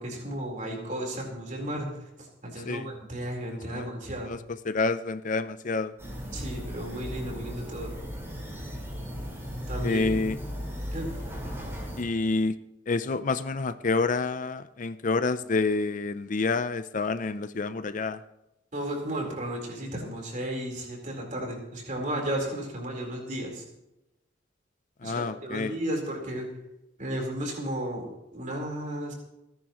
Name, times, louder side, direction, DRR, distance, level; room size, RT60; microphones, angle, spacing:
voice 1, 0.0-4.3 6.3-7.9 9.7-10.0 10.9-11.2 18.7-23.6 25.0-26.5 27.0-29.1, right 1 dB, 40° right, 0 dB, 4.1 m, -34 dB
voice 2, 4.7-5.9 9.8-10.4 12.0-12.5 12.9-18.2 25.0-25.8, left 3 dB, 40° left, 12 dB, 0.5 m, -28 dB
sound 1, 6.0-12.0, equal, 15° right, 4.7 m, -36 dB
29.5 x 10.5 x 3.1 m, 0.91 s
head